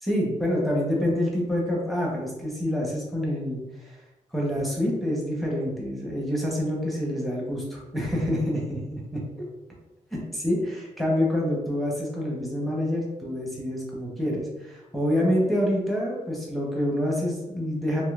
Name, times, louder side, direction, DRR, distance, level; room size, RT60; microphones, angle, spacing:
voice 1, 0.0-3.9 4.3-9.0 10.1-18.0, equal, ahead, -4 dB, 0.9 m, -27 dB
3.7 x 2.9 x 2.4 m, 1.0 s
wide cardioid pair, 125°, 13 cm